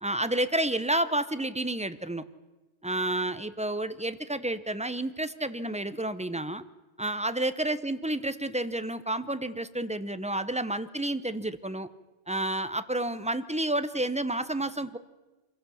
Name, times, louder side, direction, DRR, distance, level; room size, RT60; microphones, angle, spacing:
voice 1, 0.0-2.2 2.8-6.6 7.0-11.9 12.3-15.0, right 1 dB, 10° right, 12 dB, 0.4 m, -30 dB
25.5 x 16.0 x 7.0 m, 1.2 s
omnidirectional pair, 1.2 m